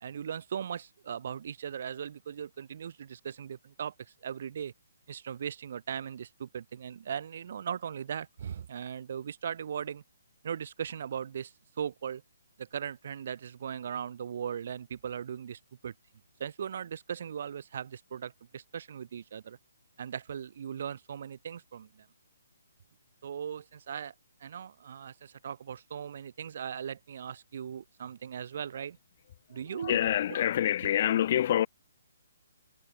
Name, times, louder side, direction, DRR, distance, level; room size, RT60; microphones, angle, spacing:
voice 1, 0.0-4.7 5.1-10.0 10.4-12.2 12.6-15.9 16.4-19.6 20.0-22.1 23.2-24.1 24.4-29.0 29.5-30.0, right 8 dB, 40° right, 1.9 m, -38 dB
voice 2, 29.5-31.7, left 11 dB, 30° left, 1.6 m, -27 dB
hypercardioid pair, 175°, 0 cm